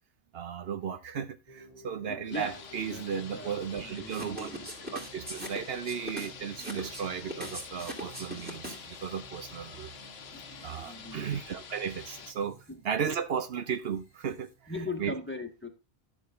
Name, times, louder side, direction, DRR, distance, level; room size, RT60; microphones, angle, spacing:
voice 1, 0.3-4.5 4.9-9.9 10.6-12.6 12.8-14.5 15.0-15.1, right 7 dB, 70° right, 1.0 m, -35 dB
sound 1, 1.5-15.0, right 2 dB, 40° right, 2.2 m, -55 dB
voice 2, 2.1-4.7 10.3-11.4 12.7-12.8 14.7-15.7, left 2 dB, 10° left, 1.4 m, -40 dB
sound 2, 2.3-12.3, left 6 dB, 75° left, 1.1 m, -47 dB
sound 3, 4.1-9.0, equal, 10° right, 2.6 m, -40 dB
11.0 x 7.3 x 3.4 m
omnidirectional pair, 1.1 m